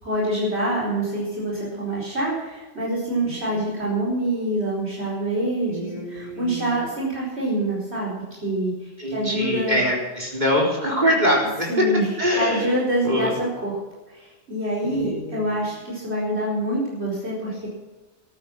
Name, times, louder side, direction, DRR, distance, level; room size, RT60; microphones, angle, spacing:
voice 1, 0.0-8.7 9.1-9.8 11.7-12.1 12.3-13.8 14.1-17.7, right 1 dB, 60° right, -5 dB, 4.9 m, -26 dB
voice 2, 3.2-3.7 5.6-6.9 9.0-11.9 12.2-12.8 13.0-13.3 14.8-15.5, equal, 35° right, -2 dB, 4.0 m, -24 dB
14.0 x 13.0 x 6.1 m, 1.2 s
omnidirectional pair, 1.2 m